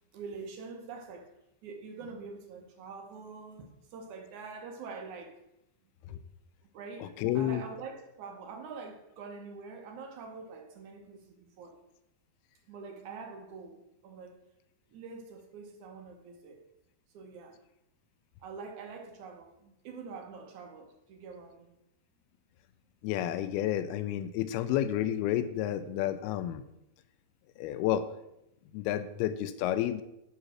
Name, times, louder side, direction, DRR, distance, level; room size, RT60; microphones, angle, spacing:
voice 1, 0.1-1.3 1.6-5.4 6.7-11.8 12.7-14.4 14.9-16.6 17.1-17.6 18.4-21.7, right 4 dB, 65° right, 3 dB, 2.1 m, -45 dB
voice 2, 7.0-7.6 23.0-26.6 27.6-28.1 28.7-30.0, left 11 dB, 85° left, 12 dB, 2.4 m, -30 dB
11.0 x 4.1 x 6.2 m, 0.86 s
omnidirectional pair, 4.5 m